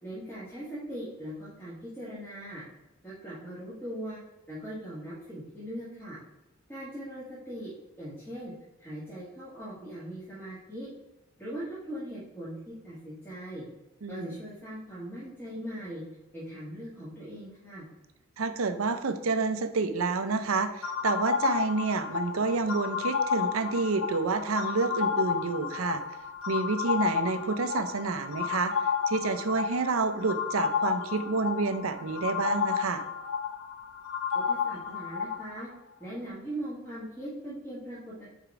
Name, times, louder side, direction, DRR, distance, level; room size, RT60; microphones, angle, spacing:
voice 1, 0.0-2.6 3.0-4.2 4.5-6.2 6.7-7.7 8.0-8.5 8.8-10.9 11.4-13.7 14.1-16.0 16.3-17.9 34.3-35.7 36.0-38.3, right 1 dB, 10° left, -9 dB, 1.6 m, -40 dB
voice 2, 14.0-14.4 18.4-26.0 26.5-33.0, right 4 dB, 85° right, 9 dB, 0.6 m, -29 dB
sound 1, 20.8-35.6, left 7 dB, 75° left, 0.9 m, -31 dB
5.0 x 4.6 x 4.8 m, 1.0 s
head